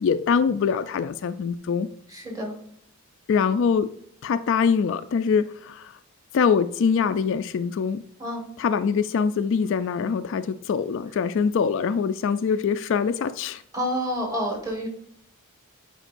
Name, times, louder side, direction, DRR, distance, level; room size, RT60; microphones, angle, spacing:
voice 1, 0.0-1.9 3.3-3.9 4.2-5.9 6.3-8.0 8.6-13.6, left 6 dB, 55° left, 12 dB, 0.3 m, -23 dB
voice 2, 2.1-2.6 8.2-8.5 13.7-14.9, equal, 15° right, 1 dB, 1.6 m, -28 dB
9.0 x 4.4 x 2.5 m, 0.70 s
head